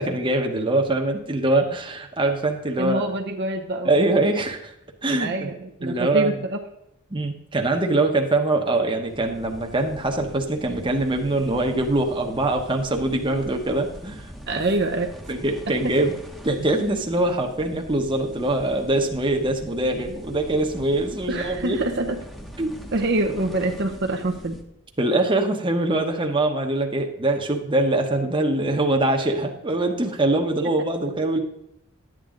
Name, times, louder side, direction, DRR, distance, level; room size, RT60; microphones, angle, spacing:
voice 1, 0.0-3.0 3.8-4.7 5.0-5.5 5.8-6.4 7.1-14.3 15.3-16.1 16.4-21.8 22.6-22.8 25.0-31.4, right 2 dB, 20° right, 3 dB, 1.0 m, -23 dB
voice 2, 2.8-4.1 5.2-6.6 14.5-15.1 15.8-15.9 21.3-22.2 22.9-24.6, right 2 dB, 50° right, 3 dB, 0.8 m, -26 dB
sound 1, 9.0-24.6, equal, ahead, 1.0 m, -42 dB
11.5 x 9.0 x 3.8 m, 0.80 s
head